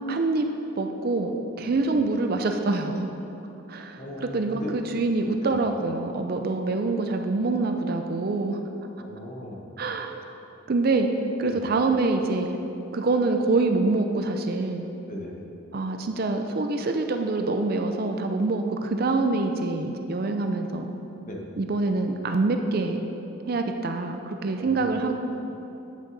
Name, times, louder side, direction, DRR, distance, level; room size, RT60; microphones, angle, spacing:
voice 1, 0.1-0.5 0.8-1.3 1.6-3.1 3.7-8.6 9.8-10.1 10.7-11.1 11.4-12.6 12.9-14.9 15.7-20.9 21.6-23.0 23.5-25.2, right 3 dB, 45° right, 5 dB, 0.4 m, -25 dB
voice 2, 4.0-4.8 5.4-5.6 9.0-9.7 11.4-11.6 15.1-15.3 21.2-21.4 24.5-24.9, left 1 dB, 35° left, -2 dB, 1.1 m, -38 dB
9.8 x 6.3 x 4.0 m, 2.9 s
head